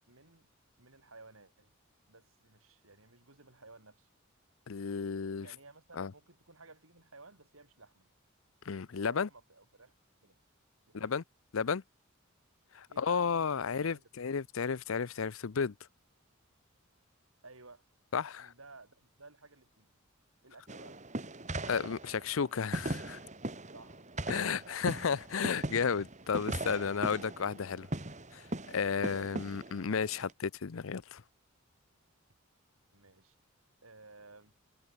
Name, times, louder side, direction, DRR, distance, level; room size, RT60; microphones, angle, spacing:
voice 1, 0.1-0.5 0.8-1.7 2.1-4.1 5.4-8.1 8.9-9.9 10.2-10.4 10.9-11.2 12.9-14.1 17.4-17.8 18.4-20.0 20.4-21.0 23.7-24.1 24.4-24.8 28.9-29.2 32.9-33.4 33.8-34.5, right 3 dB, 85° right, 7.6 m, -56 dB
voice 2, 4.7-5.5 6.0-6.1 8.7-9.3 10.9-11.2 11.5-11.8 12.7-15.7 18.1-18.5 21.7-23.2 24.3-27.9 28.3-31.2, left 6 dB, 75° left, 0.6 m, -33 dB
sound 1, 20.7-30.3, right 1 dB, 35° right, 4.3 m, -39 dB
head